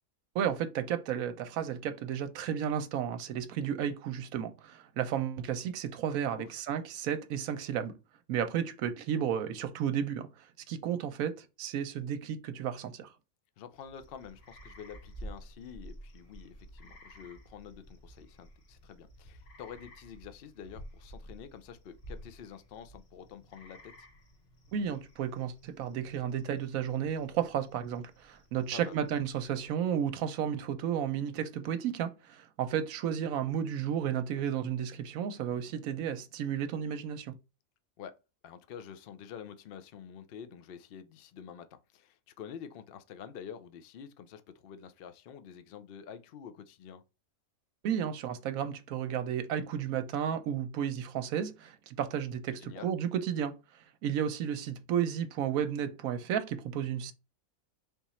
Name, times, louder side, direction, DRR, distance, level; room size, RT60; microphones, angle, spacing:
voice 1, 0.3-7.9 8.3-13.1 24.7-37.4 47.8-53.6 54.0-57.1, right 9 dB, 75° right, 1.0 m, -33 dB
voice 2, 13.6-23.9 28.7-29.0 38.0-38.1 38.4-47.0 52.6-52.9, left 8 dB, 70° left, 0.5 m, -48 dB
sound 1, 13.7-30.0, equal, 45° left, 1.3 m, -52 dB
3.6 x 3.0 x 4.2 m
omnidirectional pair, 1.6 m